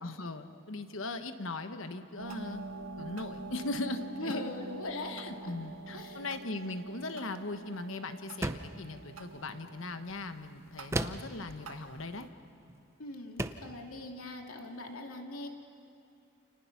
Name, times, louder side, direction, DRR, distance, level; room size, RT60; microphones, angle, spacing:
voice 1, 0.0-2.6 3.0-4.5 4.9-12.3, left 2 dB, 60° left, 8 dB, 1.3 m, -39 dB
sound 1, 2.2-12.3, right 3 dB, 80° right, 1.9 m, -46 dB
voice 2, 4.2-5.5 5.9-6.2 13.0-15.5, left 2 dB, 75° left, 2 dB, 2.6 m, -40 dB
sound 2, 8.4-8.8 10.9-11.4 12.7-12.8 13.4-13.7, right 1 dB, 10° right, 0.6 m, -34 dB
29.5 x 29.0 x 6.0 m, 2.6 s
head